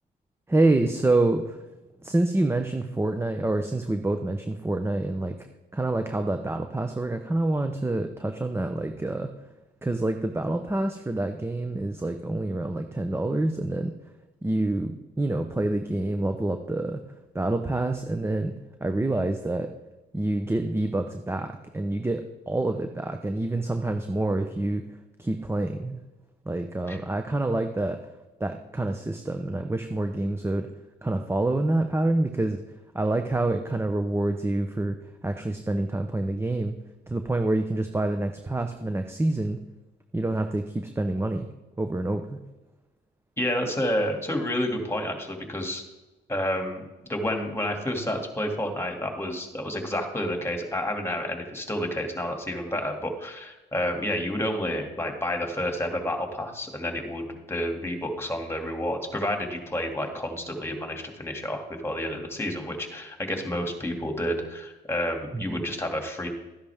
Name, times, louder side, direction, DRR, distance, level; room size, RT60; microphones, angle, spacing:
voice 1, 0.5-1.6 2.0-5.4 5.7-9.3 9.8-13.9 14.4-17.0 17.3-18.5 18.8-19.7 20.1-24.8 25.2-26.0 26.4-28.0 28.4-30.7 31.0-32.6 32.9-35.0 35.2-36.8 37.1-39.6 40.1-41.5 41.8-42.4 65.3-65.6, right 2 dB, 10° right, 6 dB, 0.8 m, -27 dB
voice 2, 43.4-45.8 46.3-66.3, left 1 dB, 10° left, 3 dB, 2.5 m, -30 dB
13.5 x 10.5 x 3.6 m, 1.1 s
cardioid pair, 90°, 20 cm